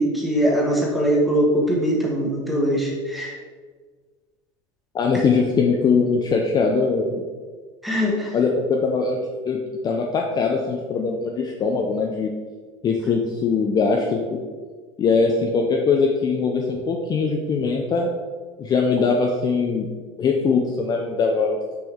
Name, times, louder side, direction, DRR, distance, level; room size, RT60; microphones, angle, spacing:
voice 1, 0.0-3.4 5.1-5.2 7.8-8.3, equal, ahead, -3 dB, 1.4 m, -21 dB
voice 2, 4.9-7.2 8.3-9.2 9.5-12.3 12.8-14.2 15.0-18.1 18.6-19.9 20.2-21.6, left 4 dB, 30° left, 1 dB, 0.6 m, -21 dB
6.1 x 4.5 x 3.6 m, 1.5 s
supercardioid pair, 125°, 14 cm